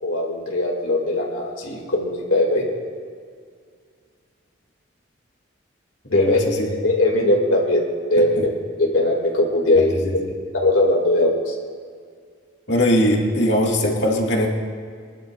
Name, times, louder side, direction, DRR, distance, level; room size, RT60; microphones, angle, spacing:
voice 1, 0.0-2.7 6.1-6.4 6.7-7.8 8.1-8.5 8.8-10.2 10.6-11.6, left 1 dB, 90° left, -1 dB, 2.4 m, -20 dB
voice 2, 6.1-6.7 12.7-14.5, left 1 dB, 60° left, -1 dB, 2.1 m, -20 dB
23.0 x 11.5 x 2.5 m, 2.1 s
head